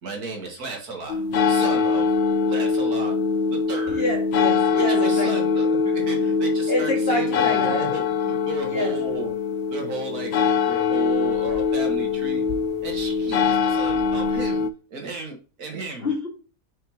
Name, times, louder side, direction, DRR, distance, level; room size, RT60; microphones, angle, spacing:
voice 1, 0.0-2.1 2.5-3.2 3.5-4.0 4.7-9.3 9.7-10.3 10.6-12.4 12.8-16.1, right 4 dB, 65° right, 2.2 m, -34 dB
sound 1, 1.1-14.7, left 5 dB, 70° left, 0.6 m, -23 dB
voice 2, 3.9-5.4 6.7-8.0 8.6-9.0 16.0-16.3, left 1 dB, 35° left, 2.3 m, -27 dB
6.4 x 5.5 x 3.0 m
omnidirectional pair, 1.8 m